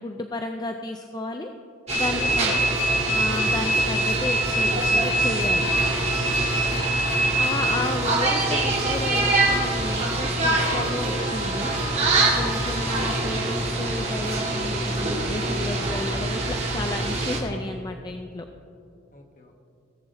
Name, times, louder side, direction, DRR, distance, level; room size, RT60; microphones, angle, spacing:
voice 1, 0.0-1.5 1.9-2.5 3.2-5.7 7.4-11.7 12.4-18.5, left 2 dB, 20° left, 5 dB, 0.4 m, -32 dB
voice 2, 1.9-3.0 6.4-6.8 19.1-19.6, left 1 dB, 40° left, 2 dB, 1.3 m, -41 dB
sound 1, 1.9-17.4, right 2 dB, 35° right, 1.8 m, -24 dB
sound 2, 2.5-13.7, equal, 10° right, 3.0 m, -39 dB
18.0 x 7.3 x 4.1 m, 2.6 s
head